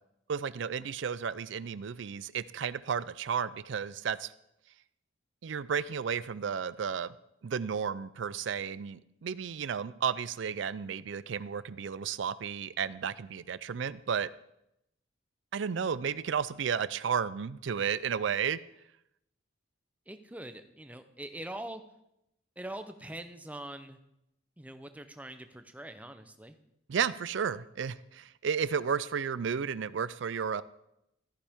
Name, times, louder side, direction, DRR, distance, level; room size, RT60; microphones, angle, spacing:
voice 1, 0.3-4.3 5.4-7.1 7.4-14.3 15.5-18.6 26.9-30.6, right 7 dB, 65° right, 17 dB, 0.4 m, -33 dB
voice 2, 20.1-21.8 22.6-24.0 24.6-26.6, right 1 dB, 5° right, 9 dB, 0.6 m, -43 dB
14.0 x 9.9 x 3.6 m, 0.82 s
head